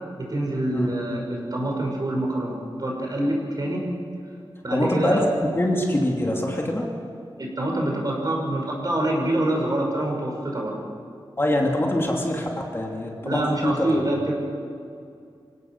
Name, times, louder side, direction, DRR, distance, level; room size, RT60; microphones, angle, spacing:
voice 1, 0.2-3.8 4.6-5.3 7.4-10.8 13.2-14.5, right 1 dB, 45° right, -1 dB, 6.0 m, -26 dB
voice 2, 4.7-6.9 11.4-13.9, left 1 dB, 25° left, -1 dB, 2.9 m, -24 dB
26.5 x 17.5 x 6.2 m, 2.4 s
wide cardioid pair, 115°, 9 cm